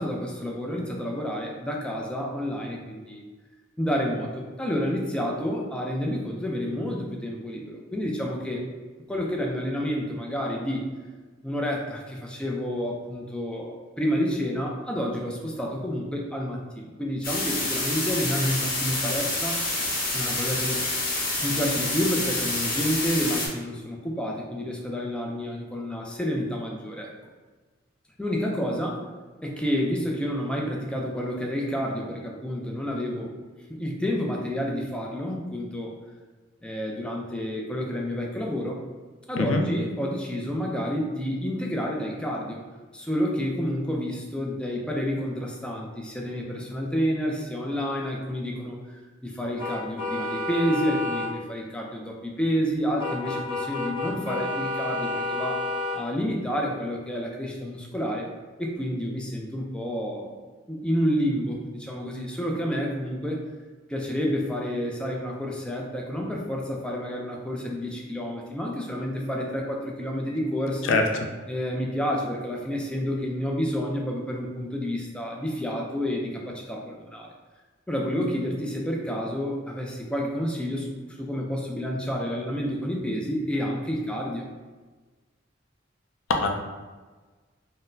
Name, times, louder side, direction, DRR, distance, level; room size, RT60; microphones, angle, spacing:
voice 1, 0.0-3.2 3.8-8.7 9.1-10.9 11.4-19.6 20.1-20.9 21.4-27.1 28.2-29.0 29.4-33.3 33.7-36.0 36.6-38.8 39.3-42.6 42.9-55.6 56.0-58.3 58.6-60.3 60.7-63.4 63.9-71.0 71.5-77.3 77.9-80.9 81.2-84.5, equal, 5° left, -1 dB, 0.4 m, -29 dB
sound 1, 17.2-23.5, left 2 dB, 50° left, 0.9 m, -28 dB
sound 2, 49.6-51.3 53.0-56.0, left 2 dB, 30° right, 1.5 m, -30 dB
voice 2, 70.8-71.3 86.3-86.5, left 3 dB, 90° left, 3 dB, 0.4 m, -23 dB
3.9 x 2.0 x 2.6 m, 1.3 s
head